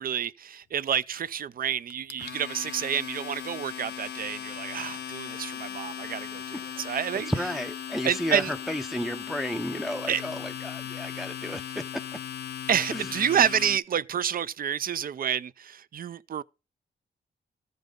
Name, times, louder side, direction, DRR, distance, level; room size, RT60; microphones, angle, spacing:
voice 1, 0.0-7.3 8.0-8.5 10.1-10.2 12.7-16.4, right 9 dB, 55° right, 0.4 m, -29 dB
Domestic sounds home sounds, 1.9-13.8, left 9 dB, 70° left, 0.6 m, -38 dB
voice 2, 6.9-11.6 12.9-13.1, equal, ahead, 0.5 m, -32 dB
14.5 x 5.3 x 3.8 m
cardioid pair, 85°, 18 cm